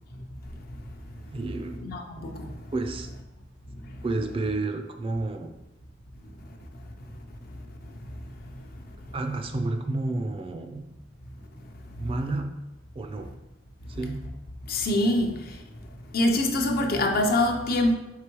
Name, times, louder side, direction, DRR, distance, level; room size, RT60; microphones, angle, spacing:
voice 1, 1.3-1.8 2.7-3.1 4.0-5.5 9.1-10.8 12.0-12.5 13.0-13.3 13.9-14.2, right 2 dB, 30° right, 0.3 m, -30 dB
voice 2, 1.8-2.5 14.7-15.3 16.1-17.9, left 1 dB, 55° left, 0.6 m, -24 dB
4.8 x 3.5 x 3.0 m
head